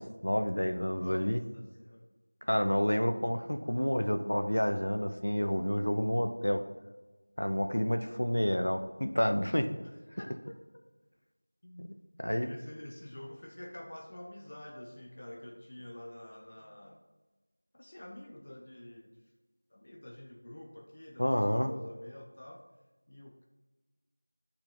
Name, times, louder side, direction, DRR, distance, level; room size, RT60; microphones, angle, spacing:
voice 1, 0.0-1.4 2.4-6.6 7.4-9.7 11.8-12.5 21.2-21.7, equal, 65° left, 6 dB, 0.7 m, -29 dB
voice 2, 0.9-2.1 7.8-8.2 9.8-9.9 10.2-10.6 11.6-17.0 17.7-19.2 19.7-22.7 23.1-23.5, left 1 dB, 25° left, 1 dB, 0.6 m, -48 dB
11.5 x 4.4 x 3.8 m, 1.2 s
figure-of-eight pair, 175°, 0 cm